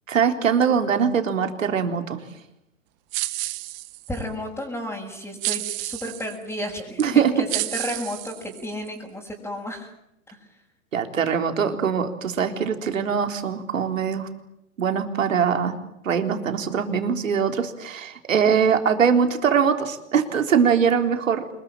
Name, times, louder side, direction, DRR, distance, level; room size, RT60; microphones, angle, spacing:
voice 1, 0.1-2.2 7.0-7.3 10.9-14.3 14.8-15.7 16.0-21.4, right 7 dB, 80° right, 6 dB, 3.9 m, -22 dB
sound 1, 3.1-4.2 5.4-6.4 7.0-7.1 7.5-8.9, right 20 dB, 40° right, 1.5 m, -30 dB
voice 2, 4.1-9.9, equal, 5° left, -4 dB, 6.4 m, -32 dB
27.0 x 21.5 x 9.1 m, 0.83 s
hypercardioid pair, 120°, 39 cm